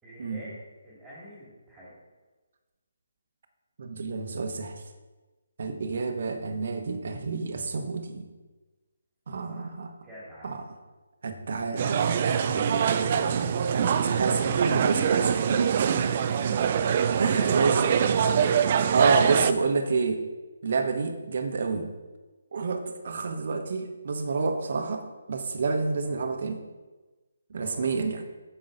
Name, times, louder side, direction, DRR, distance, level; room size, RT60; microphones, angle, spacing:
voice 1, 0.0-1.9 9.5-10.5 16.2-16.5 26.0-26.3 27.5-27.9, equal, 10° right, -8 dB, 2.2 m, -45 dB
voice 2, 3.8-4.7 5.6-8.3 9.3-9.9 10.4-10.6 11.2-15.8 17.2-17.8 18.9-20.3 20.6-21.9 22.5-26.6 27.5-28.2, right 4 dB, 55° right, 6 dB, 1.1 m, -29 dB
sound 1, 11.8-19.5, right 7 dB, 40° right, 0.5 m, -24 dB
8.9 x 6.9 x 3.9 m, 1.2 s
figure-of-eight pair, 150°, 0 cm